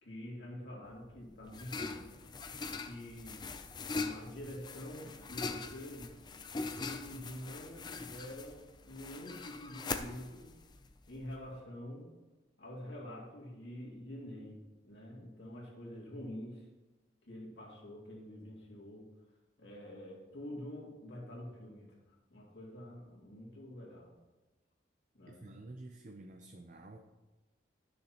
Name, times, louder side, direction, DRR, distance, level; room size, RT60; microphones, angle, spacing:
voice 1, 0.0-2.1 2.8-3.4 3.9-6.1 6.8-10.5 11.1-12.1 12.6-16.6 17.2-19.1 19.6-24.2 25.1-25.5, left 1 dB, 65° left, -3 dB, 2.4 m, -47 dB
sound 1, 0.9-11.5, left 4 dB, 20° left, 0.4 m, -42 dB
voice 2, 25.3-27.0, right 2 dB, 40° right, 4 dB, 0.5 m, -50 dB
12.5 x 6.5 x 2.9 m, 1.1 s
head